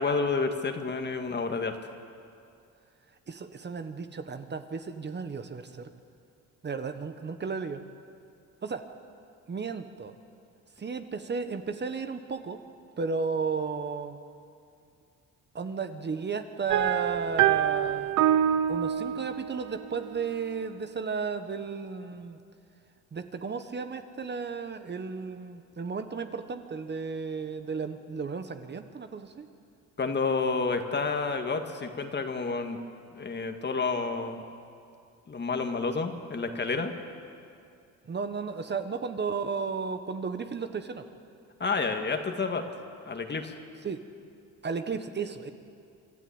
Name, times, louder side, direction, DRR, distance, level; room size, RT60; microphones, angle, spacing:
voice 1, 0.0-1.8 30.0-32.8 33.2-34.4 35.3-36.9 41.6-42.6 43.1-43.6, left 4 dB, 35° left, 6 dB, 1.8 m, -29 dB
voice 2, 3.3-5.9 6.6-7.8 8.6-8.8 9.5-10.1 10.8-12.6 13.0-14.2 15.5-18.1 18.7-22.4 23.1-29.5 38.1-41.0 43.8-44.0 44.6-45.5, right 5 dB, 35° right, 8 dB, 1.2 m, -34 dB
sound 1, 16.7-20.5, right 10 dB, 80° right, 0.8 m, -26 dB
26.0 x 12.5 x 8.8 m, 2.4 s
cardioid pair, 90°, 30 cm